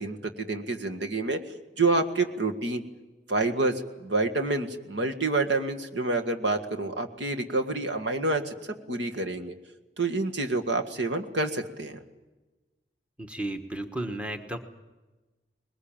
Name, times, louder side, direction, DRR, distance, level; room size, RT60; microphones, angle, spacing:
voice 1, 0.0-1.4 1.8-2.8 3.3-3.7 4.0-8.5 8.9-9.5 10.0-12.0, right 2 dB, 85° right, 5 dB, 1.9 m, -28 dB
voice 2, 13.2-14.6, right 1 dB, 5° right, 6 dB, 1.3 m, -33 dB
21.0 x 20.5 x 9.0 m, 1.2 s
head